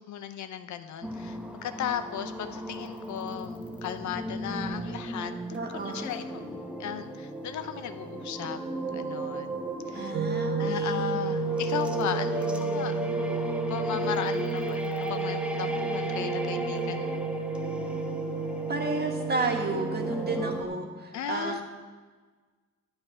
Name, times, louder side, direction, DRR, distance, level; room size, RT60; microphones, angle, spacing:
voice 1, 0.0-6.4 6.8-8.6 8.9-9.6 9.9-10.1 10.6-12.9 13.7-17.2 21.1-21.6, left 9 dB, 70° left, 10 dB, 0.7 m, -36 dB
sound 1, 1.0-20.6, right 1 dB, 5° right, 0.8 m, -36 dB
voice 2, 5.5-6.1 9.9-11.3 18.7-21.6, right 3 dB, 35° right, 2 dB, 1.7 m, -32 dB
sound 2, 10.1-20.6, right 3 dB, 60° right, 0.9 m, -31 dB
11.0 x 7.4 x 4.9 m, 1.4 s
cardioid pair, 90°, 30 cm